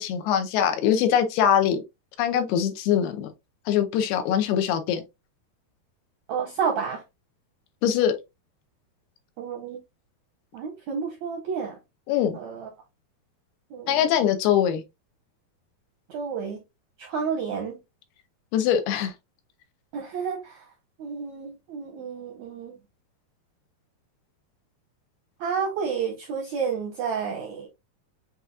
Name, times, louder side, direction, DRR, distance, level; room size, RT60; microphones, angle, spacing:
voice 1, 0.0-1.8 2.2-3.3 3.7-5.0 7.8-8.1 12.1-12.4 13.9-14.8 18.5-19.1, left 9 dB, 80° left, 2.7 m, -22 dB
voice 2, 6.3-7.0 9.4-9.8 10.5-11.7 12.3-12.7 13.7-14.1 16.1-16.6 17.0-17.8 19.9-20.6 21.0-22.7 25.4-27.7, right 6 dB, 75° right, 1.7 m, -30 dB
7.8 x 2.9 x 2.4 m
omnidirectional pair, 4.6 m